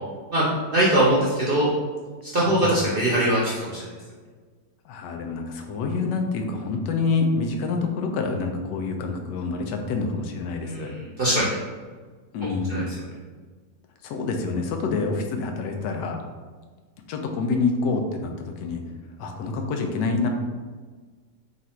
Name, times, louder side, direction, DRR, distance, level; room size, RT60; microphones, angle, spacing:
voice 1, 0.7-1.7 2.2-3.7 10.6-11.5 12.7-12.8, right 1 dB, 50° right, -7 dB, 0.6 m, -22 dB
voice 2, 2.4-2.7 4.8-10.9 12.3-12.9 14.0-16.2 17.1-18.8 19.2-20.3, left 4 dB, 90° left, 3 dB, 1.2 m, -27 dB
4.0 x 2.4 x 4.2 m, 1.4 s
omnidirectional pair, 1.8 m